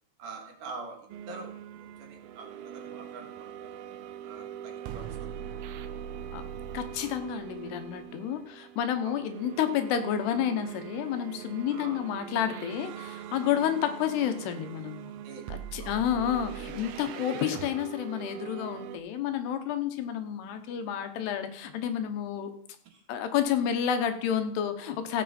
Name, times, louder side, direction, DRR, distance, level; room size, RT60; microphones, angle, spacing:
voice 1, 0.2-3.8 4.2-5.4 9.0-9.2 11.7-12.0 15.2-15.5 15.8-16.0 22.9-23.0, right 3 dB, 55° right, 1 dB, 3.2 m, -45 dB
sound 1, 1.1-19.0, right 10 dB, 80° right, 2.2 m, -42 dB
voice 2, 6.7-15.1 15.5-22.5 23.1-25.2, left 9 dB, 80° left, 8 dB, 3.0 m, -30 dB
16.0 x 7.3 x 4.3 m, 0.68 s
omnidirectional pair, 4.9 m